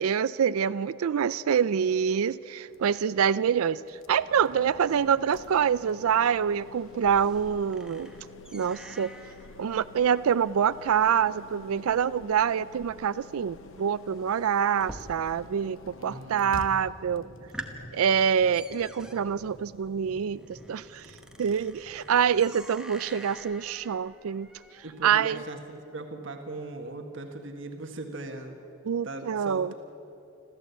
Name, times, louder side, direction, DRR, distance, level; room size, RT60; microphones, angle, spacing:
voice 1, 0.0-8.1 8.5-9.1 9.6-15.8 16.0-17.3 17.9-21.0 21.4-24.5 25.0-25.4 28.9-29.7, right 7 dB, 90° right, 18 dB, 0.4 m, -26 dB
sound 1, 2.7-17.9, left 2 dB, 70° left, 1.1 m, -49 dB
sound 2, 6.1-15.6 15.9-16.5 16.9-17.0 17.3-25.6, right 1 dB, 5° right, 1.1 m, -48 dB
voice 2, 16.0-16.6 24.8-28.6 29.0-29.7, right 2 dB, 60° right, 5 dB, 1.6 m, -39 dB
sound 3, 16.7-22.6, equal, 45° left, 2.4 m, -51 dB
27.0 x 14.5 x 8.3 m, 2.8 s
head